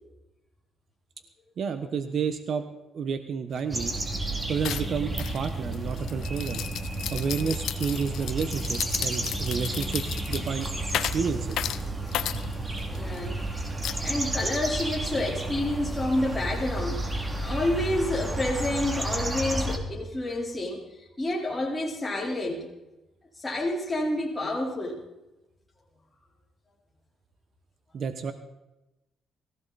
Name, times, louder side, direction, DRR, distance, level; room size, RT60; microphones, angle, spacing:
voice 1, 1.6-2.7 2.9-3.9 4.5-6.6 7.1-10.7 11.0-11.7 27.9-28.3, right 6 dB, 60° right, 8 dB, 1.3 m, -30 dB
sound 1, 3.5-3.6 3.9-4.2 4.6-13.2 13.8-14.5, left 11 dB, 80° left, 0.9 m, -34 dB
sound 2, 3.7-19.8, right 2 dB, 20° right, 2.8 m, -32 dB
voice 2, 12.9-13.4 14.0-17.0 17.4-22.7 23.4-25.0, left 1 dB, 15° left, -3 dB, 4.3 m, -29 dB
21.0 x 16.0 x 4.3 m, 0.98 s
cardioid pair, 90°, 0 cm